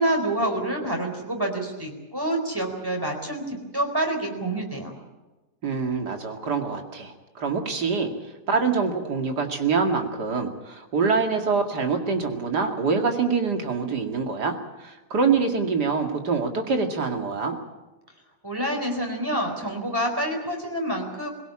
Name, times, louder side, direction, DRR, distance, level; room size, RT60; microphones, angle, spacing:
voice 1, 0.0-4.9 18.4-21.3, right 1 dB, 15° right, 3 dB, 4.1 m, -27 dB
voice 2, 5.6-8.1 8.5-17.6, right 4 dB, 75° right, 4 dB, 2.9 m, -25 dB
22.0 x 17.5 x 8.8 m, 1.1 s
omnidirectional pair, 1.8 m